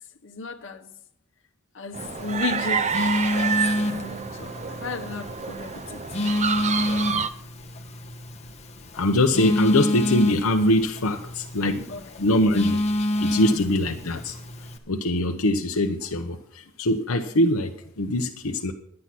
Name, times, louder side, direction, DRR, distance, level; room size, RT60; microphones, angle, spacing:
voice 1, 0.2-0.9 1.7-3.0 3.3-6.0 11.9-12.0, left 3 dB, 65° left, 1.2 m, -34 dB
sound 1, 1.9-7.3, right 6 dB, 35° right, 0.5 m, -28 dB
Telephone, 2.0-14.8, left 1 dB, 30° left, 1.1 m, -29 dB
voice 2, 8.9-12.8 13.2-18.7, left 1 dB, 80° left, 0.8 m, -23 dB
11.0 x 9.8 x 6.0 m
head